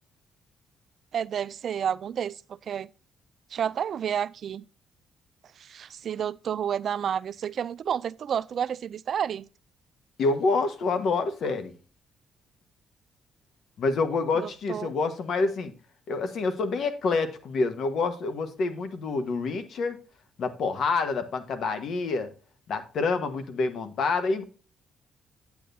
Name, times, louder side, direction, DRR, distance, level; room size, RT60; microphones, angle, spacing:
voice 1, 1.1-2.9 3.5-4.6 5.6-9.5 14.4-14.9, right 8 dB, 60° right, 0.3 m, -30 dB
voice 2, 10.2-11.7 13.8-15.7 16.1-20.0 20.4-22.3 22.7-24.4, left 4 dB, 65° left, 1.3 m, -27 dB
8.5 x 8.5 x 2.7 m
cardioid pair, 90°, 0 cm